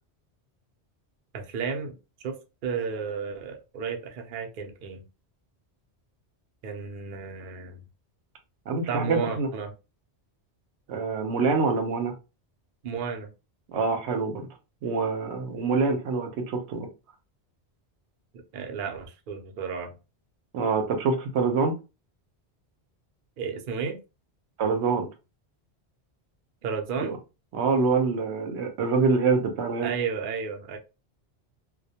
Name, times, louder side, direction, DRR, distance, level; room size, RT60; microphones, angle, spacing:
voice 1, 1.3-1.9 2.2-2.4 2.6-5.0 6.6-7.8 8.9-9.7 12.8-13.3 18.5-19.9 23.4-24.0 26.6-27.1 29.8-30.8, right 6 dB, 60° right, 4 dB, 0.7 m, -32 dB
voice 2, 8.7-9.5 10.9-12.1 13.7-14.4 14.8-16.9 20.5-21.7 24.6-25.1 27.0-27.2 27.5-29.9, right 4 dB, 85° right, 5 dB, 0.9 m, -25 dB
2.3 x 2.1 x 2.7 m, 0.29 s
omnidirectional pair, 1.1 m